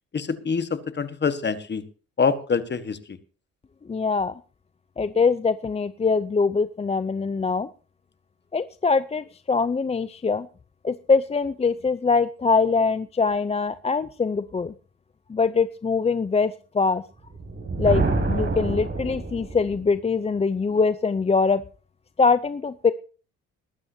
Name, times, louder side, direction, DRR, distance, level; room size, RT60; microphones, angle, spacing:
voice 1, 0.1-1.9 2.2-3.2, left 5 dB, 35° left, 12 dB, 1.4 m, -25 dB
voice 2, 3.9-4.4 5.0-7.7 8.5-10.5 10.8-14.7 15.3-17.0 17.8-21.6 22.2-22.9, left 4 dB, 20° left, 13 dB, 0.5 m, -23 dB
Thunder, 17.2-19.9, right 3 dB, 40° right, 6.1 m, -26 dB
21.5 x 12.0 x 2.8 m, 0.37 s
cardioid pair, 90°, 30 cm